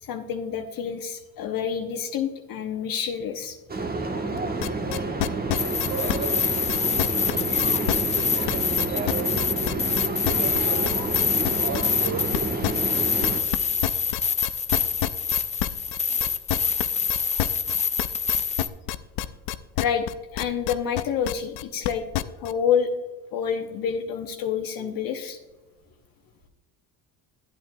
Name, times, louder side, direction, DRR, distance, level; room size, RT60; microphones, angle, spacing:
voice 1, 0.0-3.6 13.6-13.8 14.0-14.1 19.8-20.1 20.3-22.0 22.4-22.9 23.3-25.4, left 7 dB, 55° left, 5 dB, 0.9 m, -28 dB
sound 1, 3.7-13.4, right 3 dB, 25° right, 1.1 m, -29 dB
sound 2, 4.4-22.5, left 14 dB, 75° left, 0.6 m, -28 dB
sound 3, 5.6-18.7, left 6 dB, 15° left, 0.4 m, -26 dB
voice 2, 5.9-9.8 10.3-13.1, right 5 dB, 45° right, 6 dB, 1.9 m, -36 dB
11.5 x 8.6 x 2.3 m, 1.2 s
supercardioid pair, 85°, 41 cm